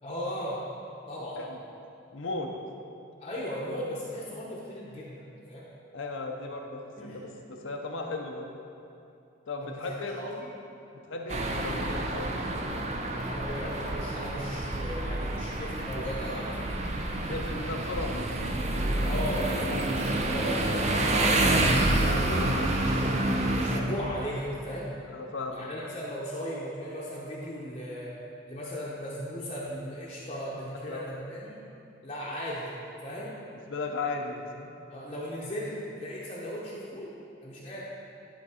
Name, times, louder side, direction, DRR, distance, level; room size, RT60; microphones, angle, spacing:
voice 1, 0.0-0.6 1.1-1.4 3.2-5.6 7.0-7.2 9.6-10.5 13.2-16.6 18.9-21.8 22.2-24.9 25.5-28.1 28.5-31.6 32.0-32.7 33.0-33.3 34.9-37.1 37.4-37.9, equal, 30° left, -6 dB, 0.8 m, -37 dB
voice 2, 2.1-2.5 5.9-8.5 9.5-10.2 11.0-12.3 17.3-18.3 22.0-22.7 25.1-25.7 30.9-31.1 33.7-34.7, left 3 dB, 70° left, 2 dB, 0.6 m, -36 dB
sound 1, 11.3-23.8, right 1 dB, 35° right, 0.5 m, -28 dB
11.0 x 3.8 x 4.9 m, 2.7 s
head